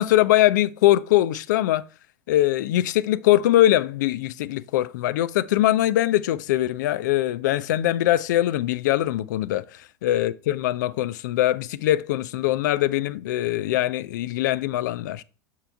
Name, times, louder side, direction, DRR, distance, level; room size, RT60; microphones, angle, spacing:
voice 1, 0.0-1.8 2.3-15.2, left 14 dB, 70° left, 0.4 m, -22 dB
6.6 x 4.6 x 3.4 m
hypercardioid pair, 90°, 10 cm